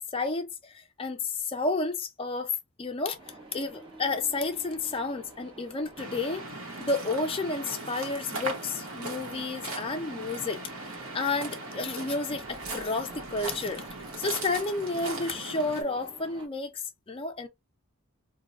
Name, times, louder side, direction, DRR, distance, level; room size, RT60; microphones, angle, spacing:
voice 1, 0.1-2.5 2.8-3.2 3.5-6.5 6.8-10.6 11.1-13.9 14.2-17.5, left 3 dB, 25° left, 0.4 m, -31 dB
sound 1, 3.2-16.5, right 2 dB, 25° right, 0.8 m, -50 dB
Waves surf, 6.0-15.8, right 2 dB, 75° right, 1.0 m, -39 dB
2.7 x 2.3 x 2.9 m
head